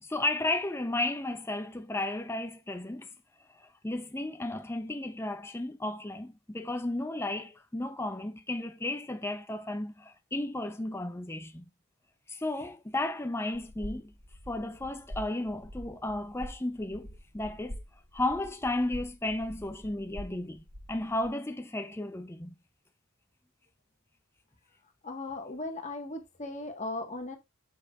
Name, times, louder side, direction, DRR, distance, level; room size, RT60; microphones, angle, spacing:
voice 1, 0.0-3.1 3.5-11.6 12.3-14.1 14.5-17.1 17.3-17.8 18.1-20.6 20.9-22.5, left 2 dB, 10° left, 0.5 m, -33 dB
sound 1, 13.5-21.3, equal, 45° right, 4.8 m, -45 dB
voice 2, 25.0-27.4, left 2 dB, 35° left, 1.4 m, -37 dB
8.2 x 5.5 x 2.4 m
head